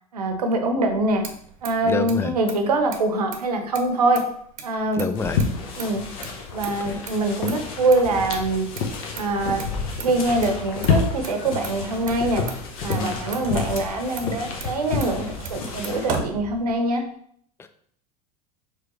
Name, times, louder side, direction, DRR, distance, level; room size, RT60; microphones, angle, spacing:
voice 1, 0.1-1.2 1.6-4.2 4.6-5.1 5.8-6.0 6.5-8.7 9.1-9.6 10.0-12.4 12.8-17.0, right 2 dB, 80° right, 5 dB, 0.8 m, -24 dB
Motor vehicle (road), 0.9-17.1, right 6 dB, 40° right, 0.8 m, -39 dB
voice 2, 1.9-2.3 5.0-5.4 6.9-7.0 12.9-13.3, left 5 dB, 15° left, 9 dB, 0.4 m, -27 dB
sound 1, 5.2-16.2, left 4 dB, 60° left, 0.9 m, -29 dB
4.8 x 3.4 x 3.0 m, 0.63 s
hypercardioid pair, 80°, 20 cm